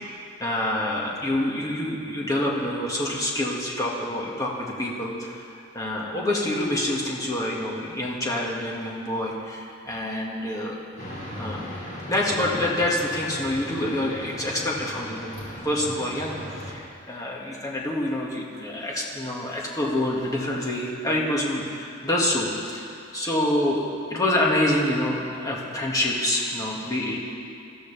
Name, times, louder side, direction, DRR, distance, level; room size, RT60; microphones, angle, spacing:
voice 1, 0.4-5.4 5.7-10.7 11.4-11.7 12.1-16.3 16.7-23.8 24.1-27.2, left 1 dB, 15° left, -4 dB, 2.0 m, -27 dB
sound 1, 11.0-16.7, left 1 dB, 40° left, 3.9 m, -37 dB
21.0 x 14.0 x 3.5 m, 2.5 s
head